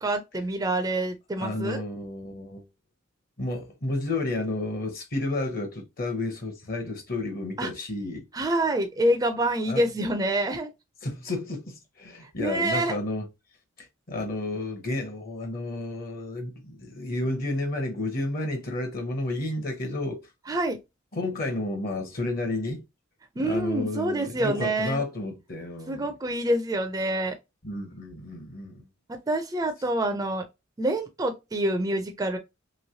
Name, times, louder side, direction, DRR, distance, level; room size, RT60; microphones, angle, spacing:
voice 1, 0.0-1.8 7.6-7.7 8.3-10.7 12.4-13.0 20.5-20.8 23.4-25.0 25.9-27.3 29.1-30.4 30.8-32.4, right 1 dB, 20° right, 0.4 m, -27 dB
voice 2, 1.4-2.7 3.4-8.3 9.7-9.8 11.0-13.3 13.8-20.3 21.1-22.8 23.4-26.1 27.6-28.9, left 2 dB, 45° left, 0.8 m, -31 dB
3.1 x 3.0 x 2.7 m
head